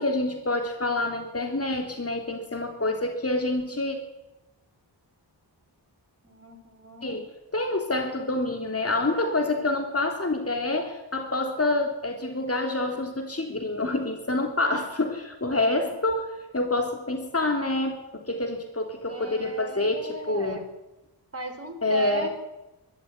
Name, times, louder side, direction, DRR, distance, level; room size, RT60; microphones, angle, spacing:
voice 1, 0.0-4.0 7.0-16.2 16.5-20.6 21.8-22.3, left 2 dB, 30° left, 4 dB, 3.6 m, -27 dB
voice 2, 6.2-7.2 15.5-15.9 19.0-20.7 21.3-22.3, right 2 dB, 30° right, 2 dB, 5.1 m, -37 dB
22.0 x 13.5 x 9.9 m, 1.0 s
wide cardioid pair, 65°, 45 cm